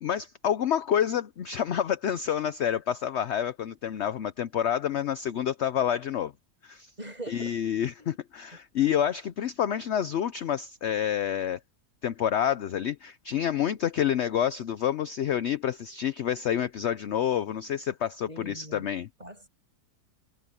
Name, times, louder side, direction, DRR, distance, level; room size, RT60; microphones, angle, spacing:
voice 1, 0.0-6.3 6.6-6.9 7.3-11.6 12.0-19.1, left 9 dB, 60° left, 0.8 m, -28 dB
voice 2, 7.0-7.6 8.0-8.2 18.3-18.8 19.2-19.5, right 1 dB, 25° right, 7.2 m, -41 dB
omnidirectional pair, 1.7 m